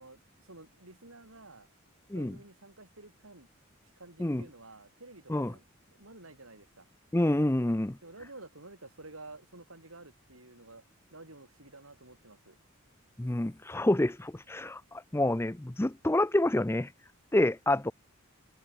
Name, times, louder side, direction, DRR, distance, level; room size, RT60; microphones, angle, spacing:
voice 1, 0.0-1.7 2.1-3.5 4.0-6.9 8.0-10.8 11.1-12.6, right 2 dB, 85° right, 7.6 m, -51 dB
voice 2, 7.1-8.0 13.2-16.9 17.3-17.9, left 1 dB, 10° left, 0.5 m, -28 dB
head